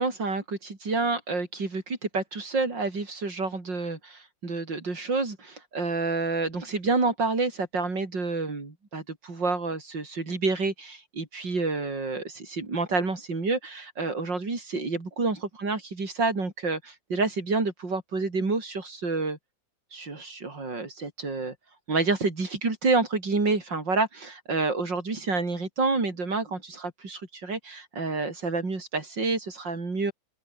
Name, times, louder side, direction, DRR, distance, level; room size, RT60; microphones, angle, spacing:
voice 1, 0.0-19.4 19.9-21.6 21.9-30.1, right 3 dB, 65° right, 5.3 m, -28 dB
open air
omnidirectional pair, 2.1 m